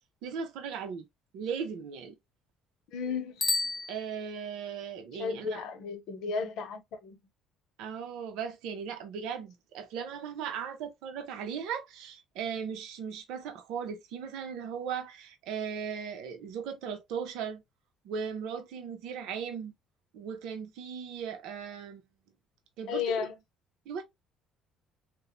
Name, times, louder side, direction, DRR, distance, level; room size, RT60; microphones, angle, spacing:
voice 1, 0.2-1.0 1.3-2.1 3.9-5.6 7.8-17.6 18.0-19.7 20.1-22.0 22.8-23.3 23.9-24.0, right 7 dB, 75° right, 0.6 m, -37 dB
voice 2, 2.9-3.5 5.2-7.2 22.9-23.3, left 6 dB, 70° left, 0.7 m, -34 dB
Bicycle bell, 3.3-4.7, left 2 dB, 15° left, 0.3 m, -32 dB
3.0 x 2.1 x 2.2 m
cardioid pair, 100°, 0 cm